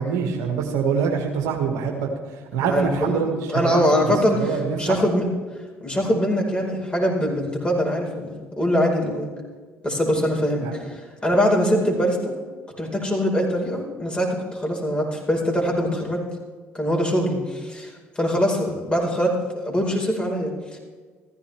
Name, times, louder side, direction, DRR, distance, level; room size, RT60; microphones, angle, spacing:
voice 1, 0.0-5.0 10.6-10.7, right 6 dB, 65° right, 2 dB, 1.8 m, -25 dB
voice 2, 2.6-3.2 3.5-4.4 4.8-5.3 5.8-9.3 9.8-12.3 12.8-16.2 16.7-20.8, equal, 15° left, -1 dB, 4.8 m, -23 dB
15.5 x 14.5 x 3.5 m, 1.5 s
figure-of-eight pair, 55°, 6 cm